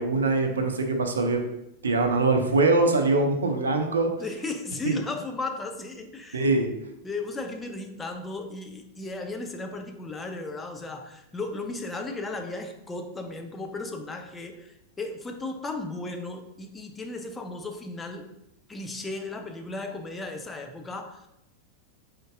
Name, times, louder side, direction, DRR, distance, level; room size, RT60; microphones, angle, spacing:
voice 1, 0.0-1.4 1.8-4.1 4.8-5.0 6.3-6.7, right 3 dB, 70° right, 4 dB, 0.6 m, -23 dB
voice 2, 4.2-6.4 7.0-18.3 18.7-21.3, left 3 dB, 15° left, 4 dB, 0.5 m, -35 dB
4.3 x 3.8 x 2.5 m, 0.87 s
figure-of-eight pair, 90°, 0 cm